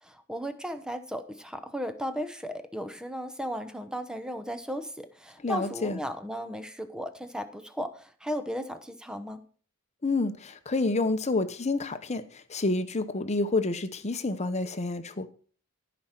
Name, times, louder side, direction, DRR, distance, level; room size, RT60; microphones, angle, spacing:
voice 1, 0.0-9.4, equal, 5° right, 0.8 m, -35 dB
voice 2, 5.4-6.0 10.0-15.3, left 2 dB, 30° left, 0.9 m, -29 dB
15.0 x 5.2 x 5.9 m
head